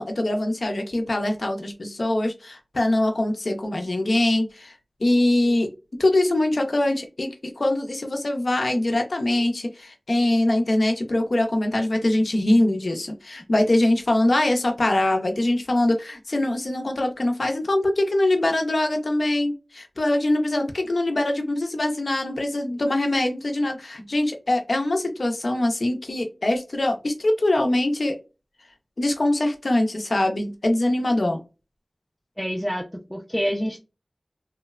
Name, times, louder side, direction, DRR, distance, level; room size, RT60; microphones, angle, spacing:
voice 1, 0.0-4.8 5.0-5.7 6.0-28.2 29.0-31.4, left 1 dB, 90° left, 4 dB, 0.5 m, -23 dB
voice 2, 32.4-33.8, equal, ahead, -1 dB, 0.4 m, -27 dB
3.0 x 2.0 x 2.3 m, 0.29 s
wide cardioid pair, 55°, 0 cm